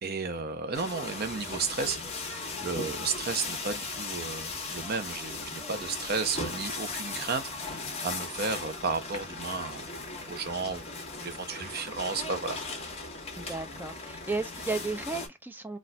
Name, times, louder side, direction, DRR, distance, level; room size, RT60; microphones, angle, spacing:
voice 1, 0.0-9.8 10.3-12.8, right 4 dB, 50° right, 0.6 m, -33 dB
sound 1, 0.7-15.3, left 3 dB, 30° left, 1.1 m, -37 dB
voice 2, 13.4-15.8, right 3 dB, 10° right, 0.5 m, -34 dB
4.1 x 2.4 x 2.2 m
head